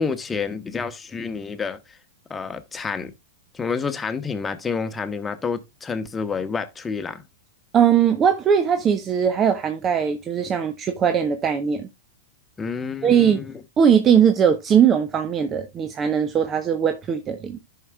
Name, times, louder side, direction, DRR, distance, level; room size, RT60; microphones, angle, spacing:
voice 1, 0.0-2.0 2.3-3.1 3.5-7.2 12.6-13.6, left 5 dB, 15° left, 1.1 m, -29 dB
voice 2, 7.7-11.9 13.0-13.4 13.8-17.6, right 8 dB, 30° right, 0.8 m, -20 dB
14.0 x 5.7 x 2.3 m
hypercardioid pair, 105°, 0 cm